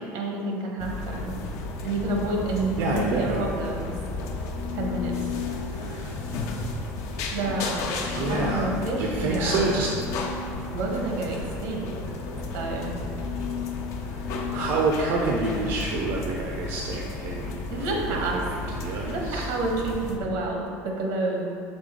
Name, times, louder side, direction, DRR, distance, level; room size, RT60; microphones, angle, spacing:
voice 1, 0.1-1.4 1.8-4.0 4.7-5.1 7.3-9.7 10.7-11.9 12.5-12.9 17.7-18.4 19.1-21.5, right 2 dB, 80° right, 0 dB, 1.1 m, -29 dB
sound 1, 0.8-20.2, left 3 dB, 60° left, 0.7 m, -33 dB
voice 2, 2.8-3.5 5.7-6.2 8.0-8.7 8.9-9.9 14.0-18.4 18.7-19.5, right 3 dB, 65° right, -1 dB, 0.6 m, -28 dB
5.3 x 3.7 x 5.1 m, 2.3 s
cardioid pair, 140°, 6 cm